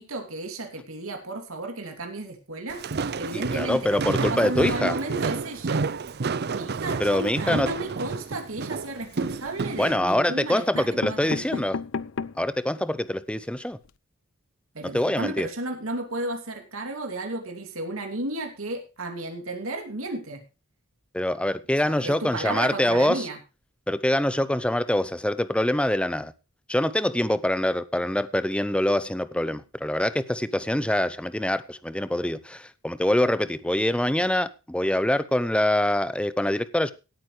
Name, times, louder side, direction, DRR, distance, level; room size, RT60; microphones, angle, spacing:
voice 1, 0.0-2.8 3.2-5.9 6.2-11.6 14.7-20.4 21.8-23.4, right 2 dB, 80° right, 2.9 m, -33 dB
Walk footsteps, 2.7-9.9, right 4 dB, 50° right, 0.6 m, -30 dB
voice 2, 3.3-5.0 7.0-7.7 9.7-11.8 12.4-13.8 14.8-15.5 21.1-23.3 23.9-26.3 26.7-36.9, left 1 dB, 5° left, 0.7 m, -24 dB
sound 1, 9.0-9.6 10.4-10.5 10.7-12.5 13.0-13.1 13.3-13.4 13.7-13.9, left 5 dB, 65° left, 0.5 m, -34 dB
17.5 x 9.1 x 3.3 m
head